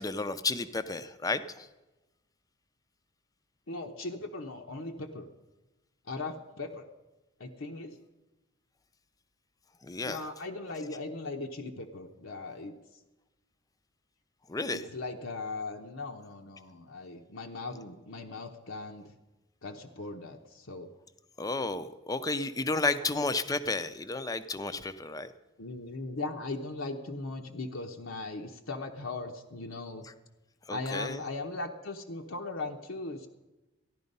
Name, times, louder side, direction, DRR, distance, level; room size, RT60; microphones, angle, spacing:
voice 1, 0.0-1.7 9.8-10.2 14.5-14.8 21.4-25.3 30.7-31.2, left 3 dB, 15° left, 12 dB, 0.5 m, -32 dB
voice 2, 3.7-5.3 6.1-6.9 7.4-8.0 10.0-12.7 14.7-19.1 19.6-20.9 23.0-23.1 25.6-30.1 30.7-33.3, left 2 dB, 70° left, 2 dB, 0.9 m, -39 dB
14.0 x 11.0 x 5.4 m, 1.1 s
head